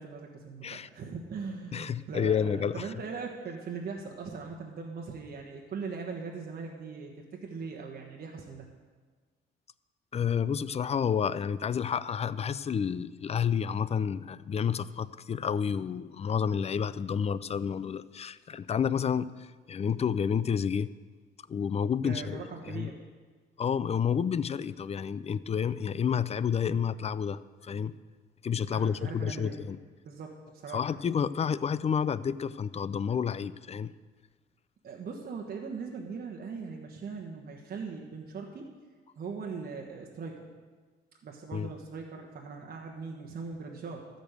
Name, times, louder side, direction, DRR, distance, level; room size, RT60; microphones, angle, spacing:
voice 1, 0.0-8.7 22.0-23.0 28.7-29.6 30.0-30.9 34.8-38.7 39.2-40.5 41.2-44.1, right 5 dB, 50° right, 0 dB, 1.3 m, -40 dB
voice 2, 1.7-2.9 10.1-20.9 21.5-22.9 23.6-27.9 28.4-29.8 30.7-33.9 41.5-41.7, left 7 dB, 30° left, 17 dB, 0.4 m, -30 dB
13.0 x 5.2 x 8.0 m, 1.5 s
cardioid pair, 90°, 20 cm